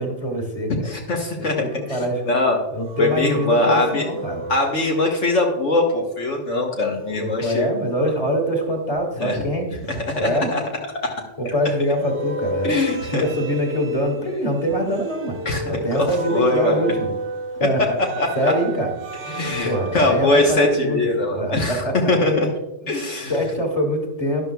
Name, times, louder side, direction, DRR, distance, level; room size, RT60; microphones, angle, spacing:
voice 1, 0.0-0.9 1.4-2.2 2.7-4.4 7.1-10.5 11.4-12.7 13.1-15.4 15.7-17.1 17.6-17.8 18.3-18.9 19.6-22.1 22.8-22.9 23.3-24.5, equal, 30° left, 2 dB, 1.9 m, -24 dB
voice 2, 0.8-1.6 1.9-2.6 3.0-4.0 4.5-7.7 9.2-9.4 9.9-10.2 10.5-10.6 12.6-13.2 15.4-16.8 18.2-18.5 19.3-22.5 22.9-23.4, left 2 dB, 65° left, -1 dB, 1.5 m, -22 dB
sound 1, 2.9-5.8 7.0-8.7 9.9-11.5 12.0-20.6, right 2 dB, 65° right, 1.1 m, -33 dB
12.5 x 11.0 x 2.3 m, 0.98 s
omnidirectional pair, 1.3 m